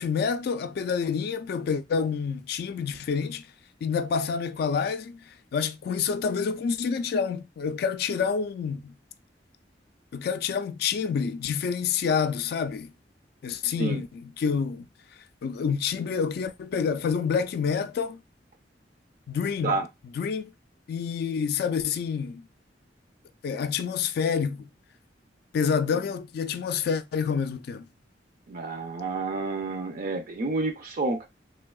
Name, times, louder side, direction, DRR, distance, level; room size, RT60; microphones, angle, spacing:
voice 1, 0.0-3.5 3.8-5.2 5.5-8.9 10.1-12.9 13.4-14.9 15.4-18.2 19.3-19.7 20.1-20.5 20.9-22.4 23.4-24.7 25.5-27.9, left 6 dB, 60° left, 0.3 m, -28 dB
voice 2, 28.5-31.3, right 3 dB, 55° right, 0.5 m, -29 dB
3.2 x 2.7 x 2.3 m
head